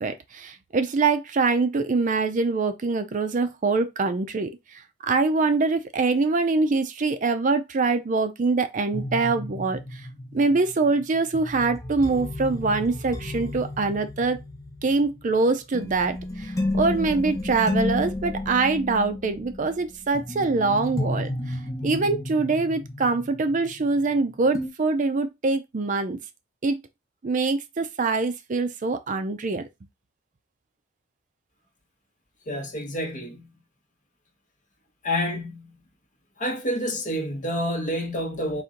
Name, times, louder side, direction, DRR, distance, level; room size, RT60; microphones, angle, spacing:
voice 1, 0.0-4.5 5.0-10.0 10.3-14.4 14.8-26.2 26.6-26.8 27.2-29.6, right 3 dB, 40° right, 0.4 m, -24 dB
sound 1, 8.9-24.2 24.5-24.7, left 1 dB, 15° left, 0.7 m, -32 dB
voice 2, 32.5-33.5 35.0-35.8 36.4-38.6, equal, 40° left, 1.1 m, -28 dB
4.2 x 2.5 x 3.8 m
head